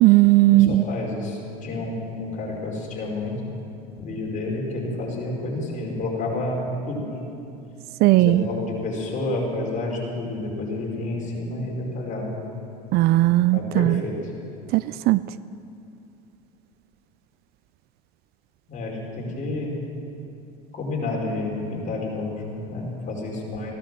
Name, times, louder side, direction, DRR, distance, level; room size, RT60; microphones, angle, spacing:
voice 1, 0.0-0.8 8.0-8.4 12.9-14.0 14.7-15.2, right 17 dB, 50° right, 17 dB, 0.4 m, -17 dB
voice 2, 0.5-3.4 4.0-7.0 8.1-12.3 13.5-14.1 18.7-19.7 20.7-23.7, left 2 dB, 35° left, -2 dB, 4.8 m, -29 dB
16.5 x 11.5 x 7.6 m, 2.7 s
hypercardioid pair, 85°, 21 cm